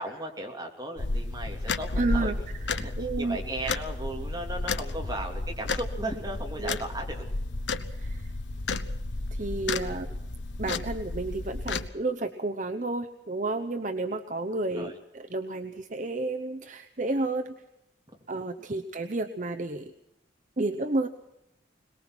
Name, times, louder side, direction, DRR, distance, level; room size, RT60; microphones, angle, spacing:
voice 1, 0.0-2.3 2.8-7.2 9.8-9.9 14.7-15.0 18.6-18.8, right 1 dB, 20° right, 1 dB, 2.9 m, -36 dB
sound 1, 1.0-11.9, left 3 dB, 75° left, 1.0 m, -32 dB
voice 2, 2.0-2.4 2.6-3.4 3.6-3.7 6.6-6.8 7.9-8.3 9.3-10.2 10.6-17.6 18.3-19.9 20.6-21.1, right 2 dB, 40° right, 6 dB, 0.8 m, -31 dB
22.5 x 20.0 x 6.2 m, 0.88 s
head